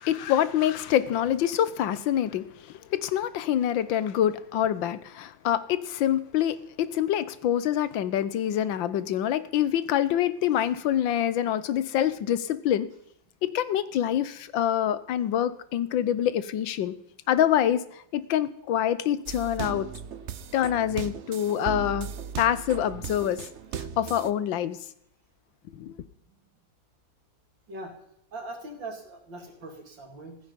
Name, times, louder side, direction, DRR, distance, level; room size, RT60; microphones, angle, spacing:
voice 1, 0.0-12.9 13.4-16.9 17.3-19.9 20.5-22.1 22.4-23.4 23.8-24.8 25.7-26.0, left 10 dB, 85° left, 1.6 m, -26 dB
sound 1, 19.3-24.3, right 7 dB, 55° right, 0.8 m, -37 dB
voice 2, 28.3-30.4, right 2 dB, 75° right, 3.5 m, -40 dB
15.0 x 14.0 x 5.3 m
omnidirectional pair, 2.0 m